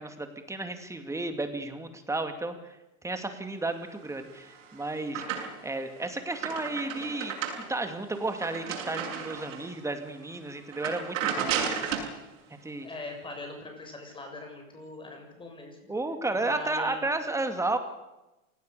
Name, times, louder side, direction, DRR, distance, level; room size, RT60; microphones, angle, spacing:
voice 1, 0.0-2.8 3.0-5.2 5.6-7.4 7.7-11.7 12.6-12.9 15.9-17.8, right 2 dB, 5° right, 7 dB, 2.5 m, -33 dB
sound 1, 4.2-5.8 6.1-9.8 10.2-10.4 10.7-12.1, right 7 dB, 70° right, 7.6 m, -34 dB
voice 2, 12.8-15.8 16.3-17.0, left 2 dB, 10° left, 3 dB, 7.0 m, -41 dB
27.5 x 18.5 x 6.9 m, 0.96 s
supercardioid pair, 135°, 40 cm